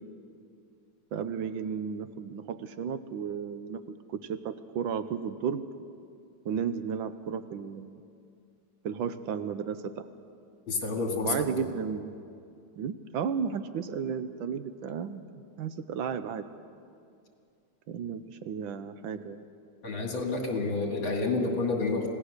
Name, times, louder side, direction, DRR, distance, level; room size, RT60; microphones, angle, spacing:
voice 1, 1.1-5.7 6.4-8.0 8.8-10.0 11.2-12.1 12.8-15.2 15.6-16.5 17.9-19.5, right 7 dB, 75° right, 11 dB, 1.4 m, -33 dB
voice 2, 10.7-11.7 19.8-22.1, left 3 dB, 70° left, 2 dB, 3.2 m, -29 dB
26.5 x 17.5 x 6.6 m, 2.4 s
omnidirectional pair, 2.3 m